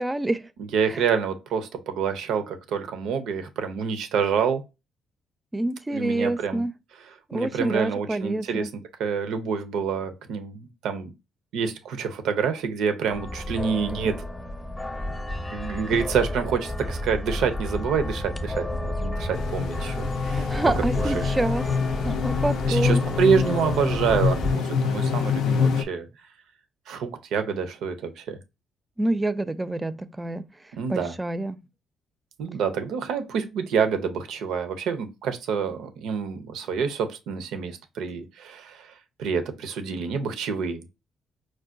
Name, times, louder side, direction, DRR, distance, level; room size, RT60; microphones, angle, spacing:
voice 1, 0.0-0.5 0.9-1.0 5.5-6.7 7.3-8.7 20.2-21.8 22.0-23.0 29.0-30.4 30.9-31.6, right 1 dB, 15° right, 0.3 m, -27 dB
voice 2, 0.6-4.6 5.9-6.6 7.1-8.7 9.0-11.1 11.5-14.3 15.5-20.5 21.0-21.4 22.7-26.1 26.9-28.4 30.7-31.1 32.4-38.9 39.2-40.8, right 6 dB, 85° right, 0.6 m, -27 dB
sound 1, 13.1-24.5, left 1 dB, 15° left, 0.7 m, -31 dB
sound 2, 19.3-25.8, left 6 dB, 80° left, 0.4 m, -25 dB
4.5 x 2.2 x 2.4 m
cardioid pair, 90°, 0 cm